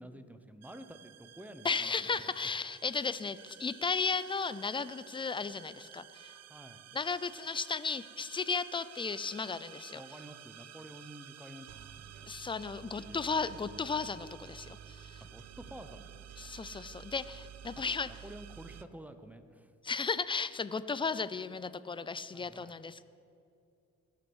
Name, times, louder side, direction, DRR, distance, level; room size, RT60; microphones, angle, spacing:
voice 1, 0.0-2.5 6.5-6.8 9.9-12.2 12.9-13.7 15.2-16.3 18.0-19.7 22.3-22.8, right 1 dB, 5° right, 9 dB, 0.9 m, -50 dB
sound 1, 0.6-18.8, right 10 dB, 55° right, 0.6 m, -52 dB
voice 2, 1.6-6.3 6.9-10.0 12.3-15.2 16.4-18.1 19.8-23.0, left 4 dB, 15° left, 15 dB, 0.5 m, -35 dB
19.5 x 6.6 x 6.3 m, 2.5 s
cardioid pair, 90°, 30 cm